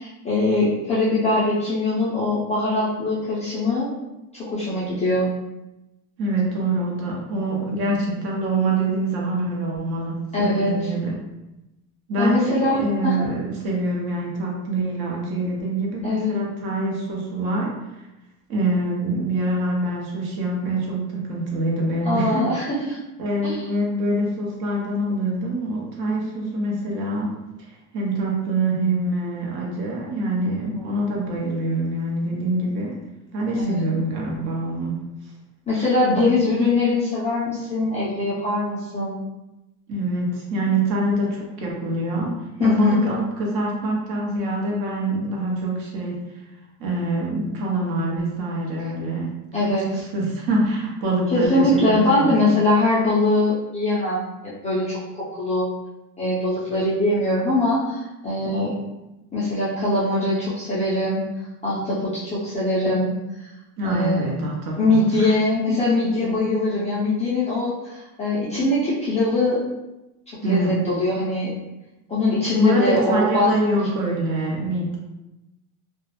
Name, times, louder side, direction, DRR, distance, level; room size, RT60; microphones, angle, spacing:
voice 1, 0.0-3.9 4.3-5.3 10.3-10.7 12.2-13.1 16.0-16.4 22.0-23.0 23.4-23.7 30.7-30.8 33.5-33.8 35.7-39.2 42.6-43.0 49.5-50.0 51.3-55.7 56.2-58.7 59.3-61.3 61.6-63.1 63.8-64.2 64.8-69.6 70.4-71.5 72.1-73.8, left 2 dB, 15° left, -10 dB, 0.3 m, -22 dB
voice 2, 6.2-11.1 12.1-17.8 18.5-22.5 23.2-27.3 27.9-33.0 33.3-35.1 39.9-46.2 46.8-49.4 49.6-52.3 63.8-65.3 70.4-70.8 72.5-75.0, right 2 dB, 50° right, -2 dB, 0.8 m, -25 dB
2.2 x 2.0 x 2.9 m, 0.97 s
supercardioid pair, 125°, 47 cm